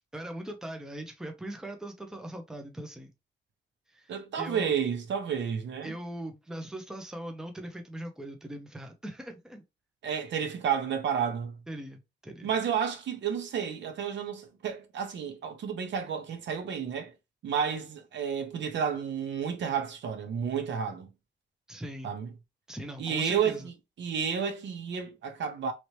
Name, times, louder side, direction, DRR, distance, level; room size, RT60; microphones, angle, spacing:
voice 1, 0.1-3.1 3.9-4.7 5.8-9.6 11.7-12.5 21.7-22.1 22.7-23.7, right 1 dB, 5° right, 0.5 m, -40 dB
voice 2, 4.1-5.9 10.0-11.6 12.4-17.1 17.4-21.1 22.0-22.3 23.0-23.7 24.0-25.7, right 7 dB, 85° right, 0.8 m, -31 dB
3.1 x 2.9 x 3.1 m
wide cardioid pair, 170°, 18 cm